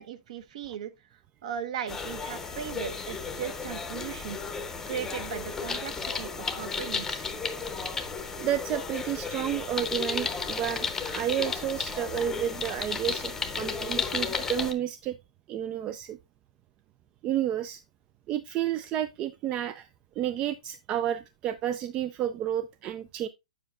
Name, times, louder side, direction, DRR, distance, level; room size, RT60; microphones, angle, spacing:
voice 1, 0.0-7.3, right 8 dB, 55° right, 1.0 m, -38 dB
sound 1, 1.9-14.7, left 5 dB, 10° left, 0.7 m, -33 dB
voice 2, 8.3-15.2 15.5-16.2 17.2-17.8 18.3-19.9 20.2-23.3, right 11 dB, 25° right, 0.3 m, -31 dB
8.6 x 7.2 x 2.4 m
hypercardioid pair, 140°, 4 cm